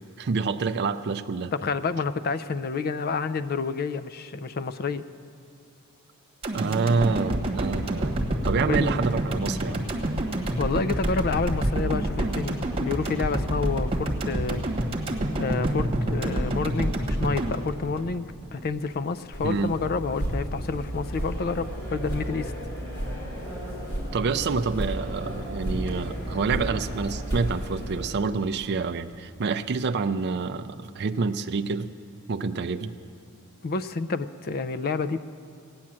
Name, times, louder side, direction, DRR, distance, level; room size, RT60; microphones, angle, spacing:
voice 1, 0.2-1.5 6.5-8.2 8.4-9.8 19.4-19.7 24.1-31.9 32.3-32.9, right 4 dB, 50° right, 8 dB, 0.4 m, -27 dB
voice 2, 1.5-5.0 8.6-8.9 10.6-14.6 15.4-22.5 33.6-35.2, left 4 dB, 45° left, 12 dB, 0.4 m, -29 dB
sound 1, 6.4-18.7 19.0-19.1, right 1 dB, 25° right, 1.3 m, -28 dB
sound 2, 19.3-28.1, right 1 dB, 70° left, 3.6 m, -32 dB
15.5 x 9.7 x 7.5 m, 2.4 s
head